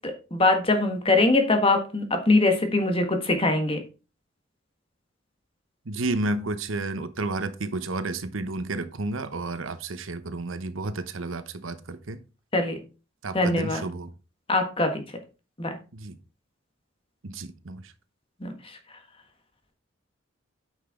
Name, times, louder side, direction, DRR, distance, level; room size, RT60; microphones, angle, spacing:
voice 1, 0.0-3.8 12.5-12.7 13.3-13.9 14.5-15.0 15.6-15.8 18.4-18.5, left 2 dB, 30° left, 1.5 m, -22 dB
voice 2, 5.9-12.2 13.2-14.1 15.9-16.2 17.2-17.9, right 2 dB, 80° right, 0.9 m, -31 dB
9.2 x 5.8 x 3.7 m
head